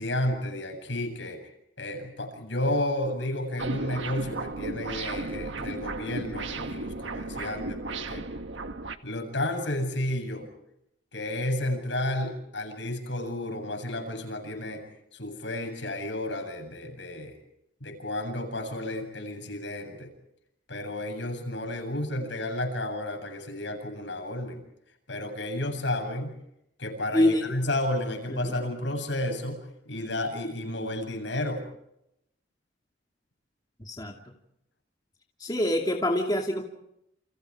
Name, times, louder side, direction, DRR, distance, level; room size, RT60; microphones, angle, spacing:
voice 1, 0.0-1.4 1.8-8.3 9.0-10.5 11.1-14.8 15.1-17.3 17.8-20.1 20.7-24.6 25.1-26.4 26.8-31.6, left 1 dB, 70° left, 5 dB, 7.8 m, -32 dB
sound 1, 3.6-9.0, right 2 dB, 75° right, 1.6 m, -34 dB
voice 2, 27.1-27.7 28.3-28.5 33.8-34.2 35.4-36.6, left 1 dB, 20° left, 1 dB, 2.6 m, -26 dB
30.0 x 30.0 x 4.9 m, 0.79 s
head